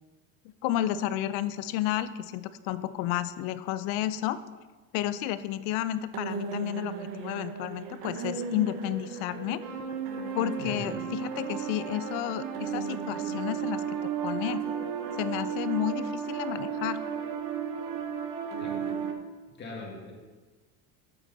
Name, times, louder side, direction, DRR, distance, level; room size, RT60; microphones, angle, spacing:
voice 1, 0.6-4.4 4.9-9.6 10.3-14.6 15.2-17.0, left 13 dB, 70° left, 14 dB, 0.6 m, -31 dB
sound 1, 3.1-3.2 6.1-19.1, right 7 dB, 55° right, 1.0 m, -34 dB
voice 2, 10.6-10.9 18.6-18.8 19.6-20.1, left 2 dB, 25° left, -1 dB, 1.9 m, -40 dB
8.1 x 7.9 x 4.0 m, 1.3 s
cardioid pair, 145°, 41 cm